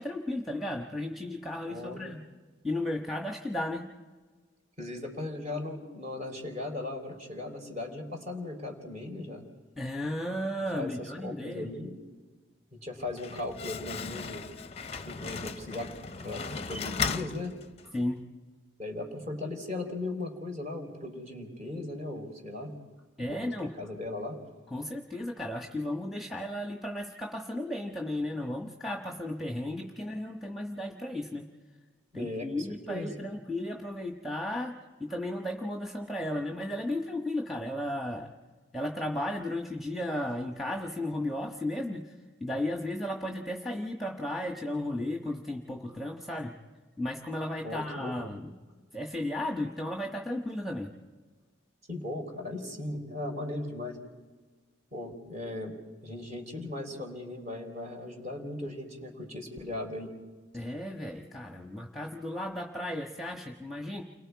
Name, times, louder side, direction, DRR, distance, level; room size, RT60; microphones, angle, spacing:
voice 1, 0.0-2.2 2.6-3.9 9.8-11.7 17.9-18.2 23.2-23.7 24.7-31.5 32.1-34.7 35.0-38.3 38.7-42.1 42.4-46.5 47.0-48.5 48.9-50.9 60.5-64.0, left 1 dB, ahead, 1 dB, 1.3 m, -34 dB
voice 2, 1.6-2.0 4.8-9.4 10.7-12.0 12.7-14.5 14.8-15.9 16.2-17.6 18.8-22.7 23.3-24.4 32.1-33.1 47.6-48.2 51.9-54.0 54.9-55.7 56.0-60.1, left 2 dB, 40° right, 2 dB, 4.1 m, -38 dB
Slam, 12.9-18.1, left 5 dB, 35° left, 0.6 m, -37 dB
29.5 x 22.5 x 4.8 m, 1.4 s
head